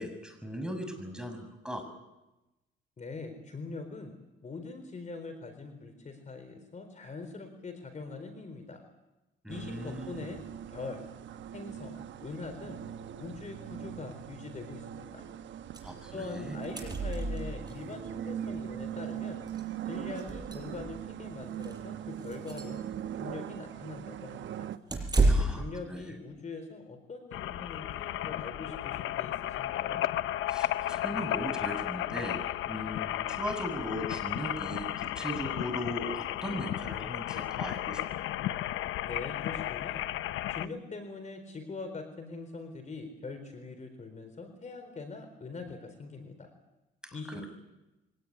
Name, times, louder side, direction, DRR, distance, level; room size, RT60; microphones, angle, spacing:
voice 1, 0.0-1.8 9.4-10.3 15.8-16.6 25.3-26.1 30.5-38.0 47.0-47.5, equal, 5° right, 6 dB, 6.6 m, -38 dB
voice 2, 3.0-4.1 4.4-8.8 9.5-10.4 10.7-11.1 11.5-12.8 13.2-15.3 16.1-19.4 19.8-22.8 23.2-24.7 25.2-30.0 39.0-40.0 40.5-46.5 47.1-47.5, left 3 dB, 35° left, 7 dB, 4.2 m, -43 dB
sound 1, 9.5-24.8, right 10 dB, 70° right, 1.1 m, -41 dB
sound 2, 15.7-15.9 16.2-16.3 16.5-17.8 19.0-19.1 19.5-19.6 20.1-21.1 21.5-21.8 22.2-22.8 24.9-25.7, right 2 dB, 20° right, 7.0 m, -29 dB
sound 3, 27.3-40.7, left 13 dB, 85° left, 0.8 m, -34 dB
24.0 x 18.5 x 9.8 m, 1.0 s
cardioid pair, 90°, 20 cm